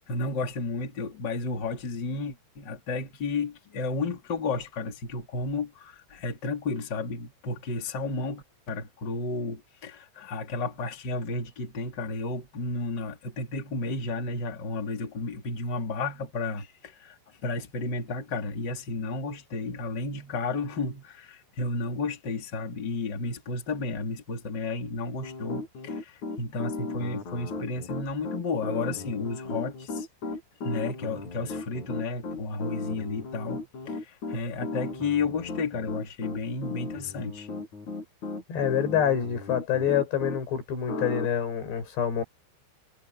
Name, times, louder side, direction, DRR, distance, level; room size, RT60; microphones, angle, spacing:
voice 1, 0.1-30.1 30.6-37.5, left 3 dB, 30° left, 3.0 m, -32 dB
Piano, 25.2-40.4 40.9-41.3, left 3 dB, 45° left, 4.9 m, -36 dB
voice 2, 38.5-42.2, left 9 dB, 70° left, 7.1 m, -26 dB
omnidirectional pair, 5.1 m